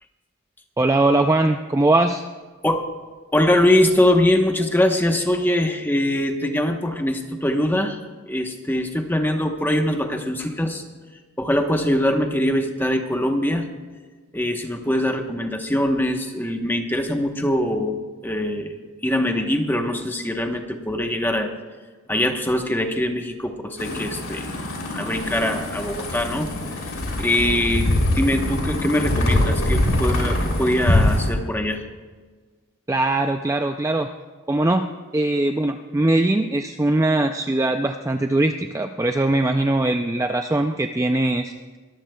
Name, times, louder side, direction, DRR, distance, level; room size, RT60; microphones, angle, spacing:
voice 1, 0.8-2.2 32.9-34.1 34.5-34.9 35.1-41.8, right 2 dB, 15° right, 6 dB, 0.3 m, -21 dB
voice 2, 3.3-8.0 8.3-10.8 11.4-13.7 14.3-18.7 19.0-21.5 22.1-24.5 24.9-26.5 27.2-31.8, left 1 dB, 10° left, 4 dB, 0.9 m, -22 dB
sound 1, 23.8-31.3, left 1 dB, 65° left, 3.2 m, -23 dB
22.5 x 14.0 x 2.3 m, 1.4 s
head